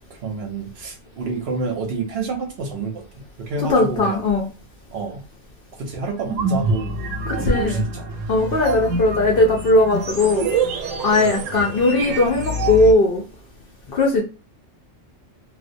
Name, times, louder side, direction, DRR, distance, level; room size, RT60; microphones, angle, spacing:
voice 1, 0.1-4.3 4.9-5.2 5.8-6.9 7.3-8.2 11.2-11.4, right 4 dB, 65° right, 2 dB, 0.8 m, -29 dB
voice 2, 3.7-4.4 7.5-7.8 8.3-10.5 11.0-13.2 13.9-14.2, left 2 dB, 60° left, 0 dB, 0.6 m, -18 dB
sound 1, 6.2-12.9, right 3 dB, 90° right, 1.0 m, -26 dB
2.3 x 2.1 x 2.5 m, 0.33 s
omnidirectional pair, 1.3 m